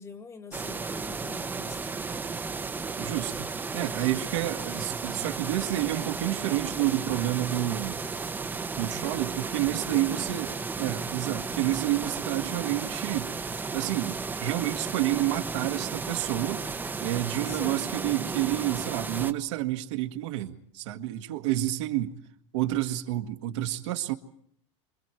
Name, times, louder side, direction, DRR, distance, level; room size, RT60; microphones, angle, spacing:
voice 1, 0.0-2.1 9.8-10.3 17.4-17.8, left 4 dB, 15° left, 1.8 m, -43 dB
sound 1, 0.5-19.3, right 4 dB, 10° right, 0.9 m, -34 dB
voice 2, 3.0-3.5 3.7-8.0 8.8-13.3 13.7-16.6 17.0-22.1 22.5-24.1, right 15 dB, 70° right, 1.7 m, -29 dB
29.0 x 26.0 x 4.6 m
supercardioid pair, 145°, 16 cm